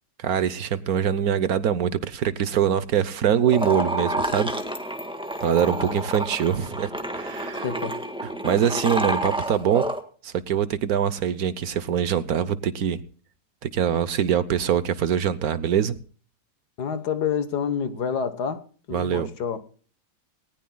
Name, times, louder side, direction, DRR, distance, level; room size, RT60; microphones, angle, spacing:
voice 1, 0.2-4.5 5.4-7.7 8.4-9.9 10.2-13.0 13.6-15.9 18.9-19.3, right 9 dB, 60° right, 1.2 m, -23 dB
sound 1, 3.5-10.0, right 1 dB, 5° right, 1.5 m, -29 dB
voice 2, 5.6-6.0 7.5-8.0 16.8-19.6, left 7 dB, 65° left, 1.7 m, -29 dB
19.0 x 19.0 x 2.3 m
omnidirectional pair, 1.9 m